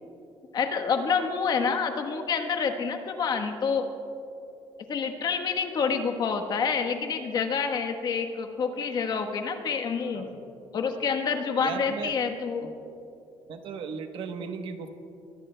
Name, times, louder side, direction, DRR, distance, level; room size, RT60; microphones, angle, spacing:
voice 1, 0.5-3.9 4.9-10.3 10.7-12.7, left 5 dB, 45° left, 5 dB, 1.1 m, -28 dB
voice 2, 11.6-12.1 13.5-14.9, right 5 dB, 60° right, 6 dB, 1.0 m, -36 dB
23.5 x 19.0 x 2.2 m, 2.7 s
cardioid pair, 160°, 10 cm